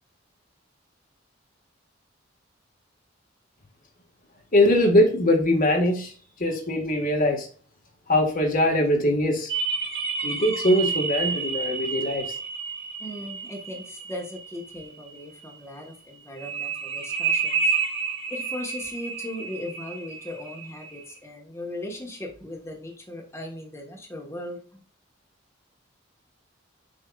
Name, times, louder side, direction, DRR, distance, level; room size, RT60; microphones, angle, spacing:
voice 1, 4.5-6.1 6.4-7.5 8.1-9.5 10.2-12.3, left 1 dB, 45° left, 1 dB, 1.8 m, -21 dB
sound 1, 9.5-15.0 16.4-21.1, right 5 dB, 65° right, 1.3 m, -30 dB
voice 2, 13.0-17.7 18.3-24.8, left 1 dB, 15° left, -1 dB, 1.5 m, -38 dB
7.8 x 5.6 x 2.5 m, 0.42 s
head